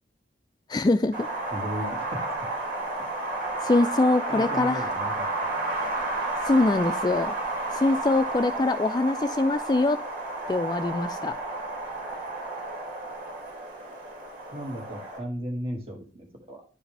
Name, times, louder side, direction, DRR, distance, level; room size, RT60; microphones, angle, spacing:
voice 1, 0.7-1.3 3.6-4.9 6.4-7.3 7.7-10.0 10.5-11.3, left 2 dB, 25° left, 11 dB, 0.3 m, -23 dB
Wind, 1.1-15.2, right 2 dB, 65° right, 3.5 m, -32 dB
voice 2, 1.5-2.2 4.3-5.3 14.5-16.7, equal, 35° right, 2 dB, 2.1 m, -35 dB
11.0 x 4.8 x 3.4 m, 0.38 s
head